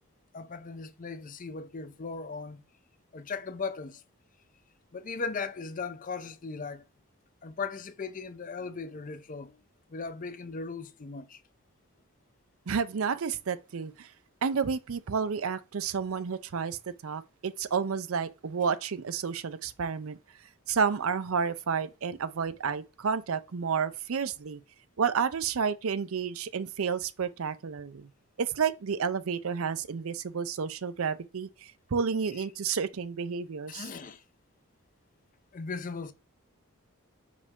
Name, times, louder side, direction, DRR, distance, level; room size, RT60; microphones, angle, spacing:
voice 1, 0.3-2.6 3.1-4.0 4.9-6.9 7.4-9.6 9.9-11.4 33.7-34.2 35.5-36.1, left 4 dB, 35° left, 0.5 m, -37 dB
voice 2, 12.7-14.1 14.4-20.2 20.7-24.6 25.0-28.1 28.4-33.9, right 6 dB, 65° right, 0.5 m, -31 dB
5.4 x 4.9 x 3.6 m
head